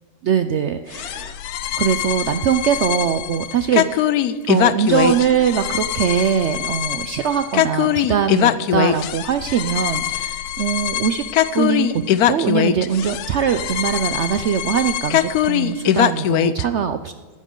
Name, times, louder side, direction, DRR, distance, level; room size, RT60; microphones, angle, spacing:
voice 1, 0.2-1.4 1.8-4.1 4.4-11.2 11.5-12.0 12.3-17.0, right 8 dB, 80° right, 9 dB, 0.6 m, -21 dB
sound 1, 0.9-16.6, left 11 dB, 75° left, 1.0 m, -22 dB
15.5 x 12.0 x 3.8 m, 1.4 s
omnidirectional pair, 1.8 m